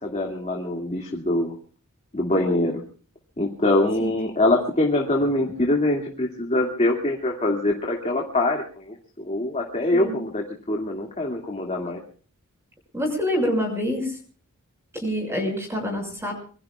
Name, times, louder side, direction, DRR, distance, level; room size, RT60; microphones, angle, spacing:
voice 1, 0.0-1.5 2.1-2.8 3.4-12.0, left 1 dB, 30° left, 0 dB, 2.3 m, -24 dB
voice 2, 12.9-14.2 14.9-16.3, equal, 10° right, 2 dB, 6.4 m, -26 dB
26.0 x 23.5 x 2.4 m, 0.41 s
head